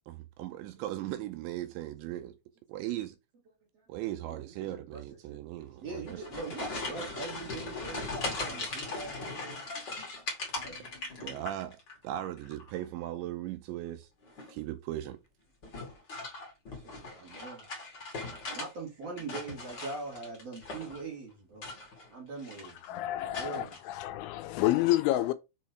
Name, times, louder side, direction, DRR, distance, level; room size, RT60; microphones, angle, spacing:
voice 1, 0.1-2.4 2.7-3.2 3.9-6.2 11.2-14.1 14.5-15.2, right 13 dB, 85° right, 2.7 m, -38 dB
voice 2, 3.9-5.4 5.8-9.6 10.6-10.9 11.2-11.4 14.4-14.5 16.7-17.7 18.5-21.7 22.1-23.7, right 3 dB, 45° right, 2.1 m, -43 dB
sound 1, 5.9-11.9 12.2-12.8 14.2-14.6 15.6-18.7 19.0-21.1 21.5-22.1 22.4-22.9 23.3-23.8, left 3 dB, 35° left, 1.8 m, -39 dB
voice 3, 22.8-25.3, left 15 dB, 85° left, 3.0 m, -29 dB
7.1 x 4.2 x 4.5 m
omnidirectional pair, 5.6 m